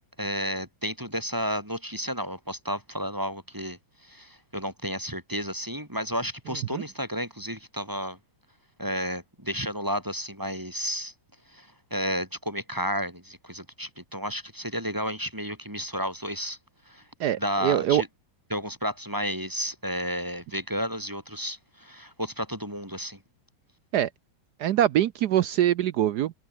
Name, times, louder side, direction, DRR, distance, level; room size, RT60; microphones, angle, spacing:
voice 1, 0.2-8.2 8.8-11.1 11.5-16.6 16.8-17.1 17.4-18.1 18.5-23.2, equal, 10° right, 3.3 m, -32 dB
voice 2, 17.2-18.0 23.9-24.1 24.6-26.3, right 11 dB, 70° right, 1.1 m, -23 dB
omnidirectional pair, 2.1 m